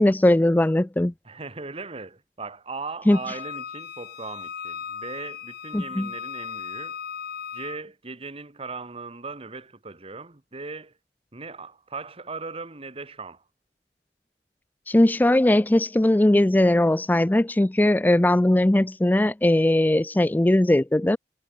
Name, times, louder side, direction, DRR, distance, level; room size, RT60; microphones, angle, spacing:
voice 1, 0.0-1.1 3.1-3.2 5.7-6.1 14.9-21.2, left 1 dB, 10° left, 0.4 m, -19 dB
voice 2, 1.2-7.0 7.5-10.9 11.3-13.4, right 3 dB, 35° right, 1.6 m, -38 dB
Wind instrument woodwind instrument, 3.1-7.8, left 7 dB, 60° left, 0.8 m, -37 dB
head